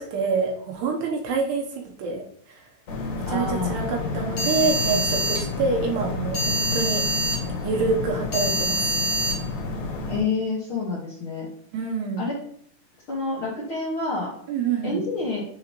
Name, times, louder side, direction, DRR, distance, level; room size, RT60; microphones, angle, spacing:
voice 1, 0.0-2.6 3.2-7.1 7.6-9.0 11.7-12.3 14.5-15.0, right 4 dB, 75° right, 0 dB, 3.0 m, -27 dB
sound 1, 2.9-10.2, left 1 dB, 45° left, 2.8 m, -26 dB
voice 2, 3.3-3.9 10.1-11.5 12.2-12.4 13.1-14.3 14.8-15.4, left 3 dB, 60° left, -6 dB, 1.3 m, -28 dB
9.6 x 3.9 x 3.1 m, 0.63 s
omnidirectional pair, 5.0 m